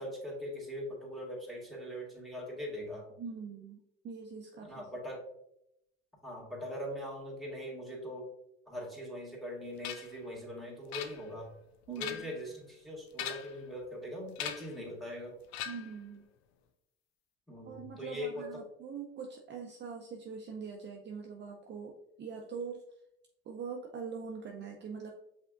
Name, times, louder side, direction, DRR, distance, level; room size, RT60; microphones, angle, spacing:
voice 1, 0.0-3.1 4.6-5.2 6.2-8.3 8.7-11.5 11.9-15.4 17.5-18.5, equal, ahead, -4 dB, 1.7 m, -41 dB
voice 2, 3.2-4.9 11.9-12.3 15.7-16.3 17.7-22.8 23.5-25.1, right 5 dB, 35° right, 1 dB, 0.6 m, -43 dB
sound 1, 9.8-10.2 10.9-11.5 11.9-12.4 13.1-13.6 14.4-14.8 15.5-16.0, left 10 dB, 85° left, 0.6 m, -40 dB
5.5 x 3.6 x 2.5 m, 0.79 s
supercardioid pair, 80°, 31 cm